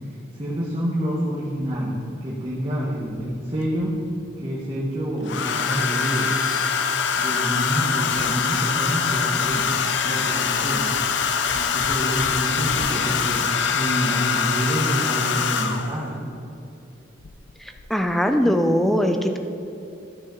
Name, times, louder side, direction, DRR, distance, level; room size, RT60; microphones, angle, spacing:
voice 1, 0.3-4.0 4.4-6.3 7.2-9.7 10.0-10.9 11.5-16.2, equal, 25° right, -7 dB, 1.2 m, -27 dB
Domestic sounds home sounds, 1.6-1.7 3.2-3.8 5.3-16.0 17.2-17.5 17.8-18.1, left 6 dB, 60° left, 0.5 m, -24 dB
voice 2, 17.9-19.4, equal, ahead, 5 dB, 0.4 m, -20 dB
13.0 x 6.2 x 3.8 m, 2.8 s
head